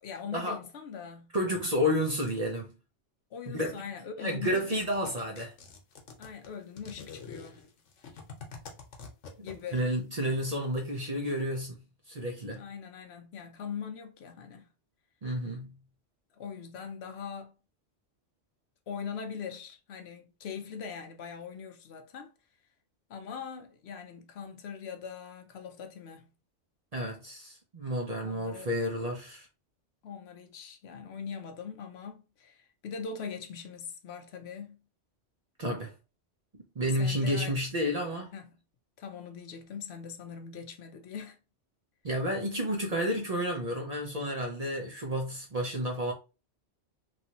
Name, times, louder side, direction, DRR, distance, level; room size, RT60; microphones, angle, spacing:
voice 1, 0.0-1.3 3.3-4.7 6.2-7.6 9.4-9.9 12.6-14.7 16.4-17.5 18.9-22.3 23.1-26.3 28.2-28.7 30.0-34.8 36.9-37.5 38.3-38.5 39.0-41.4, left 6 dB, 65° left, 0.8 m, -41 dB
voice 2, 1.3-2.7 3.5-3.7 4.2-5.5 9.4-12.6 15.2-15.8 26.9-29.5 35.6-35.9 36.5-38.3 42.0-46.1, equal, 45° right, 0.6 m, -31 dB
sound 1, 4.4-9.9, left 5 dB, 90° left, 1.1 m, -46 dB
3.2 x 2.5 x 2.8 m
omnidirectional pair, 1.2 m